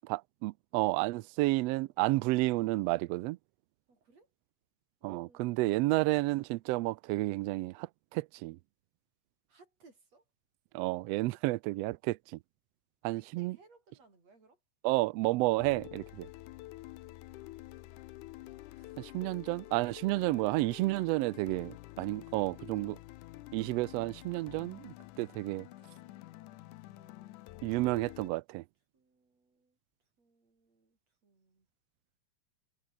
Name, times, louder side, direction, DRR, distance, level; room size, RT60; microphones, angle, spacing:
voice 1, 0.0-3.4 5.0-8.6 10.7-12.4 13.0-13.6 14.8-16.3 19.0-23.0 23.5-25.7 27.6-28.6, right 20 dB, 85° right, 1.4 m, -31 dB
voice 2, 3.9-4.3 5.0-5.7 9.5-10.2 13.1-14.6 18.7-19.7 22.2-22.9 25.6-28.1 28.9-29.8 30.2-31.7, right 3 dB, 55° right, 7.9 m, -65 dB
sound 1, 15.6-28.3, left 17 dB, 85° left, 2.2 m, -49 dB
omnidirectional pair, 3.4 m